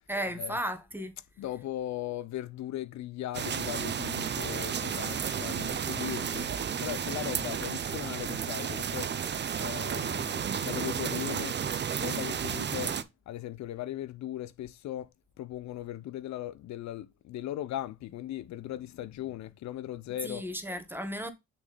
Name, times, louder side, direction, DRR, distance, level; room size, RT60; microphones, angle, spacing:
voice 1, 0.1-1.2 20.2-21.3, equal, 5° right, 1.3 m, -34 dB
voice 2, 1.4-6.5 6.8-9.1 9.6-11.6 12.0-13.0 13.3-15.1 15.4-20.5, left 13 dB, 65° left, 0.5 m, -38 dB
sound 1, 3.3-13.0, right 7 dB, 35° right, 0.6 m, -32 dB
6.0 x 4.3 x 3.9 m
cardioid pair, 90°, 30 cm